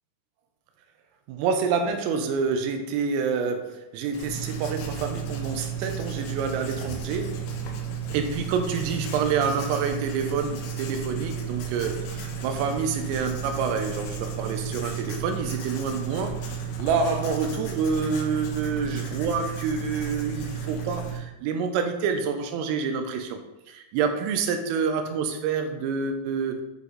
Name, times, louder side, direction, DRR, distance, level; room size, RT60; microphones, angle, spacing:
voice 1, 1.3-7.4 8.1-23.4 23.7-26.6, right 5 dB, 85° right, 6 dB, 3.4 m, -28 dB
Writing, 4.1-21.2, right 6 dB, 75° left, 3.5 m, -33 dB
9.6 x 5.6 x 4.0 m, 1.0 s
omnidirectional pair, 6.0 m